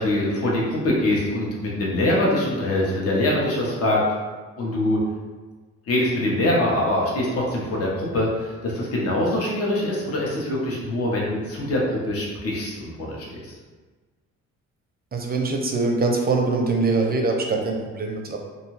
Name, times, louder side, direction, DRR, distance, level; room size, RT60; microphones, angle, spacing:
voice 1, 0.0-4.0 4.6-5.0 5.9-13.5, left 1 dB, 50° left, -3 dB, 0.8 m, -23 dB
voice 2, 15.1-18.4, right 3 dB, 30° right, 2 dB, 0.5 m, -23 dB
2.6 x 2.3 x 3.0 m, 1.3 s
cardioid pair, 90°, 30 cm